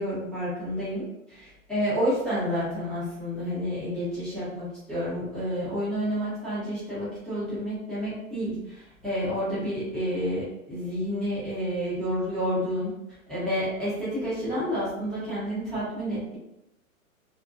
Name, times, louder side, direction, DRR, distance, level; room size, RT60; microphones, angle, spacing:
voice 1, 0.0-12.9 13.3-16.4, equal, ahead, -12 dB, 0.6 m, -30 dB
2.6 x 2.0 x 2.4 m, 0.86 s
hypercardioid pair, 135°, 42 cm